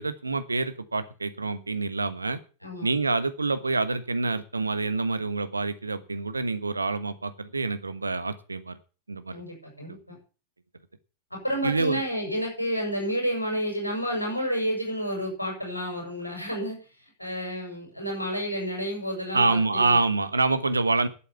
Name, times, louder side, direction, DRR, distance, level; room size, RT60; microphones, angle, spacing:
voice 1, 0.0-2.4 2.8-8.8 9.1-9.4 9.9-10.0 11.6-12.0 19.3-21.1, right 3 dB, 80° right, 12 dB, 1.3 m, -26 dB
voice 2, 9.3-10.2 11.4-16.8 17.2-20.0, equal, 85° left, 0 dB, 7.2 m, -30 dB
11.5 x 8.7 x 7.1 m, 0.35 s
figure-of-eight pair, 90°, 0 cm